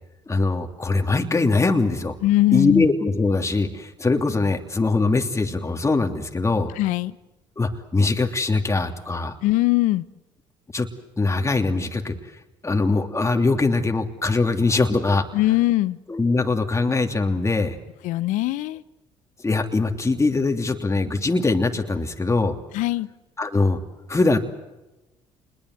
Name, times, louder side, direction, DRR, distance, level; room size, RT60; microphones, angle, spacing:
voice 1, 0.3-2.2 2.5-6.7 7.6-9.4 10.7-10.9 11.2-12.1 12.6-15.2 16.1-17.8 19.4-22.6 23.4-23.8 24.1-24.4, left 3 dB, 20° left, 4 dB, 3.0 m, -22 dB
voice 2, 2.2-2.9 6.8-7.2 9.4-10.0 15.3-16.0 18.0-18.8 22.7-23.1, left 17 dB, 75° left, 18 dB, 0.9 m, -21 dB
27.5 x 21.5 x 7.9 m, 1.0 s
supercardioid pair, 65°, 13 cm